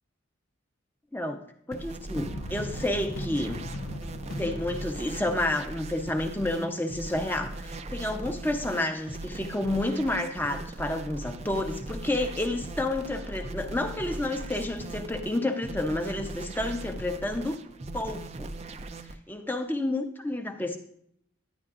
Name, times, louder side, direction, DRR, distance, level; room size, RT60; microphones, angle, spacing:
voice 1, 1.7-3.7 4.4-17.6 17.9-18.5 19.3-20.8, left 1 dB, 10° left, 6 dB, 0.6 m, -30 dB
sound 1, 1.7-19.2, right 2 dB, 30° right, 0.4 m, -39 dB
sound 2, 2.1-6.2, left 1 dB, 85° left, 0.7 m, -39 dB
10.5 x 9.9 x 2.5 m, 0.69 s
head